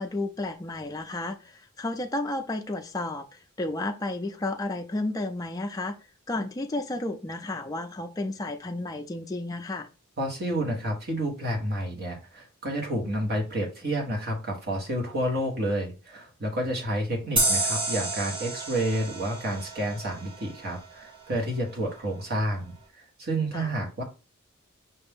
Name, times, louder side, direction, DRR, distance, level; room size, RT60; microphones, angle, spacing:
voice 1, 0.0-6.0 6.3-9.9 23.5-23.7, left 2 dB, 15° left, 0.3 m, -32 dB
voice 2, 10.2-24.0, right 1 dB, 45° right, 1.3 m, -30 dB
sound 1, 17.4-20.7, right 2 dB, 25° right, 1.1 m, -29 dB
5.7 x 2.6 x 3.5 m
head